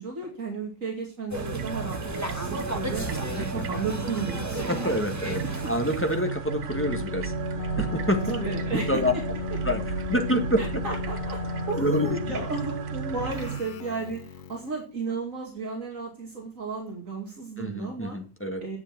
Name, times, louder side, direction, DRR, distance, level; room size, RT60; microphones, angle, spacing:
voice 1, 0.0-3.1 3.3-4.9 5.2-5.3 5.6-5.7 8.1-9.2 10.6-11.4 11.7-18.2 18.6-18.8, right 4 dB, 60° right, 0 dB, 2.8 m, -34 dB
sound 1, 1.3-6.3, right 1 dB, 10° right, 1.5 m, -34 dB
sound 2, 1.3-13.6, right 9 dB, 85° right, 1.5 m, -34 dB
voice 2, 3.3-3.7 4.7-7.3 7.8-8.2 8.7-9.1 9.6-9.8 10.1-10.6 11.8-12.2 17.6-18.6, left 1 dB, 10° left, 5 dB, 1.7 m, -27 dB
Keyboard (musical), 6.7-14.8, left 8 dB, 55° left, 0.5 m, -36 dB
11.0 x 8.1 x 6.0 m, 0.33 s
omnidirectional pair, 1.6 m